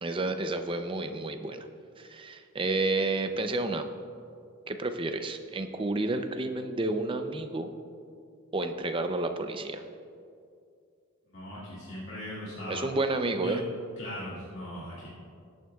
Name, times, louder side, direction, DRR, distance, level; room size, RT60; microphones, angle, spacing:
voice 1, 0.0-1.7 2.0-3.9 4.7-7.7 8.5-9.8 12.7-13.6, right 2 dB, 25° right, 7 dB, 0.5 m, -30 dB
voice 2, 11.3-12.9 13.4-13.6 14.0-15.1, equal, 55° left, -9 dB, 2.1 m, -39 dB
19.5 x 9.2 x 2.4 m, 2.4 s
head